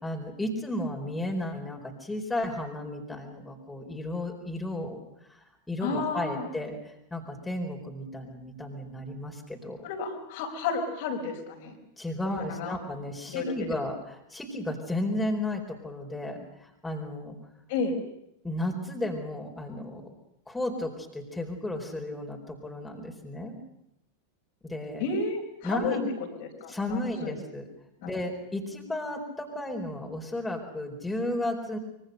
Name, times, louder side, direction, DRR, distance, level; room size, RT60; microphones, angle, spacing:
voice 1, 0.0-5.0 5.3-5.4 5.7-9.9 12.0-17.3 18.4-20.0 20.5-23.6 24.6-25.0 25.6-26.1 26.7-27.7 28.0-31.8, left 1 dB, 5° left, 2 dB, 4.4 m, -33 dB
voice 2, 5.8-6.5 9.8-11.8 12.4-12.8 13.3-13.5 17.7-18.0 25.0-26.0 26.4-27.4 28.0-28.1, left 4 dB, 50° left, 2 dB, 4.9 m, -32 dB
25.0 x 23.5 x 6.6 m, 0.82 s
figure-of-eight pair, 90°, 0 cm